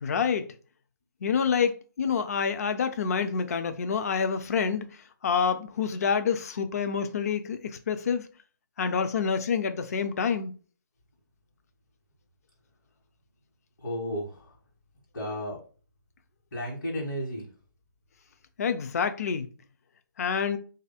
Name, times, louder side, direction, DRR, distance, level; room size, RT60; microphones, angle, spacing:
voice 1, 0.0-0.4 1.2-4.8 5.2-7.6 7.9-8.2 8.8-10.5 18.6-19.5 20.2-20.6, left 6 dB, 45° left, 0.4 m, -27 dB
voice 2, 13.8-14.5 15.1-15.6 16.5-17.5, equal, 65° left, 1.4 m, -33 dB
3.3 x 2.6 x 4.0 m
hypercardioid pair, 160°, 11 cm